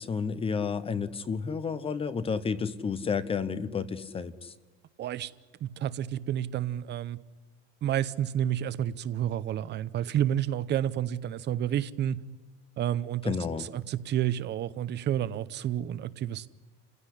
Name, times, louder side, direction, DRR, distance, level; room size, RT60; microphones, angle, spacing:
voice 1, 0.0-4.5 13.3-13.7, left 5 dB, 20° left, 0.8 m, -31 dB
voice 2, 5.0-5.3 5.6-7.2 7.8-12.2 12.8-16.5, right 11 dB, 35° right, 0.8 m, -30 dB
28.0 x 16.5 x 10.0 m
cardioid pair, 155°, 31 cm